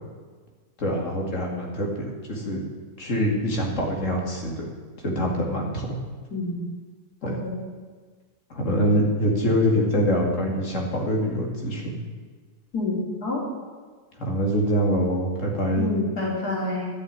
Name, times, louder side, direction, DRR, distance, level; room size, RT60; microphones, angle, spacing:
voice 1, 0.8-2.6 3.0-4.6 5.0-6.0 7.2-7.3 8.5-12.0 14.2-16.0, equal, 50° left, 0 dB, 2.6 m, -24 dB
voice 2, 7.2-7.5 12.7-13.4 15.8-16.9, left 2 dB, 80° left, -3 dB, 3.7 m, -28 dB
11.5 x 7.0 x 9.6 m, 1.5 s
omnidirectional pair, 1.6 m